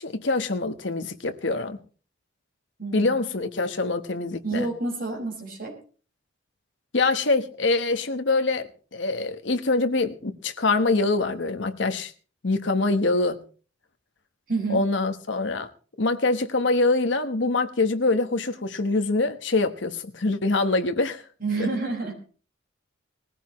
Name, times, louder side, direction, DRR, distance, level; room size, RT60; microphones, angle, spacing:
voice 1, 0.0-1.8 2.9-4.7 6.9-12.1 12.4-13.4 14.7-15.7 16.0-21.2 21.6-21.7, left 3 dB, 65° left, 1.2 m, -24 dB
voice 2, 2.8-3.1 4.4-5.8 14.5-14.8 21.4-22.1, right 3 dB, 45° right, 5.5 m, -28 dB
20.0 x 15.0 x 3.1 m
head